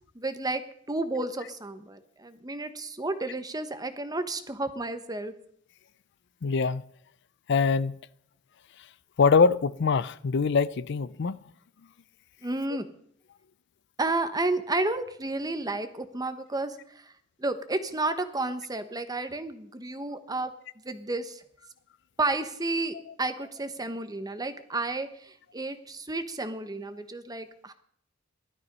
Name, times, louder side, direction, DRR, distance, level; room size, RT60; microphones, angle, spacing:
voice 1, 0.1-5.3 12.4-12.9 14.0-17.0 17.4-20.5 20.8-21.4 22.2-27.7, right 2 dB, 20° right, 1.1 m, -31 dB
voice 2, 6.4-6.8 7.5-8.0 9.2-11.4, left 5 dB, 60° left, 0.5 m, -23 dB
16.0 x 12.5 x 5.4 m
head